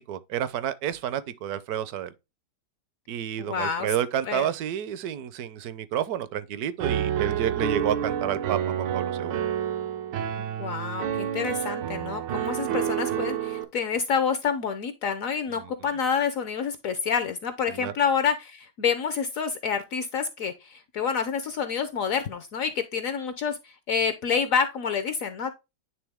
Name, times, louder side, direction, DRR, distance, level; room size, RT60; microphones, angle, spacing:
voice 1, 0.0-2.1 3.1-9.4 15.6-15.7 17.7-17.9, right 10 dB, 70° right, 1.0 m, -30 dB
voice 2, 3.4-3.9 4.3-4.5 10.4-25.5, left 6 dB, 65° left, 0.9 m, -28 dB
Piano, 6.8-13.6, right 9 dB, 90° right, 1.4 m, -29 dB
9.3 x 3.4 x 3.4 m
omnidirectional pair, 1.9 m